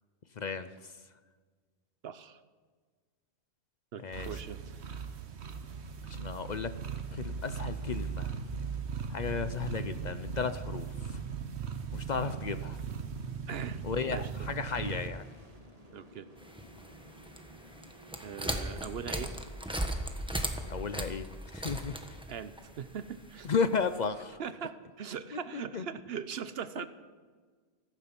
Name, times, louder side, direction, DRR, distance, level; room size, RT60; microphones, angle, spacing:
voice 1, 0.4-0.9 4.0-4.3 6.1-6.7 7.1-8.3 9.1-11.2 11.9-12.8 13.8-15.2 20.7-21.3 21.5-22.0 23.4-24.4 25.3-25.9, left 5 dB, 50° left, 12 dB, 0.7 m, -34 dB
voice 2, 2.0-2.4 3.9-5.1 12.1-12.2 13.5-14.3 15.9-16.3 18.2-19.3 22.3-23.5 24.4-26.9, right 7 dB, 70° right, 13 dB, 1.0 m, -41 dB
sound 1, 4.1-15.1, right 6 dB, 85° right, 1.3 m, -38 dB
sound 2, 14.7-19.7, right 1 dB, 35° right, 2.3 m, -56 dB
sound 3, 16.4-24.1, right 1 dB, 5° right, 1.2 m, -38 dB
15.0 x 15.0 x 6.0 m, 1.5 s
omnidirectional pair, 1.1 m